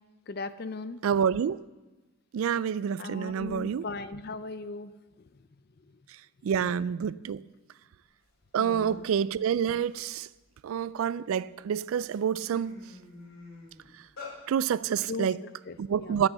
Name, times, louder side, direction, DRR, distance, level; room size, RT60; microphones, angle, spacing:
voice 1, 0.3-1.0 3.0-4.9 8.6-9.1 15.1-16.2, left 3 dB, 45° left, 0.5 m, -38 dB
voice 2, 1.0-1.6 2.3-3.8 6.4-7.4 8.5-10.3 10.6-12.8 14.5-15.4 15.8-16.3, right 8 dB, 75° right, 0.3 m, -28 dB
sound 1, 8.3-8.4 8.6-9.1 9.5-11.1 11.7-11.8 12.1-14.4, left 3 dB, 70° left, 4.8 m, -47 dB
11.5 x 8.2 x 6.8 m
head